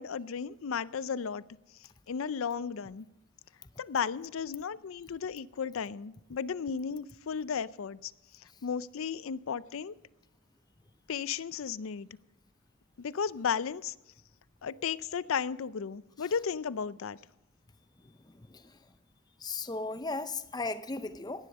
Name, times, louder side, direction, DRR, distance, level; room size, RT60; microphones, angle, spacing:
voice 1, 0.0-1.4 2.1-3.1 3.8-10.0 11.1-12.1 13.0-13.9 14.6-17.2, left 6 dB, 75° left, 0.5 m, -34 dB
voice 2, 18.0-18.8 19.4-21.5, left 3 dB, 20° left, 0.6 m, -37 dB
16.5 x 11.0 x 5.3 m
head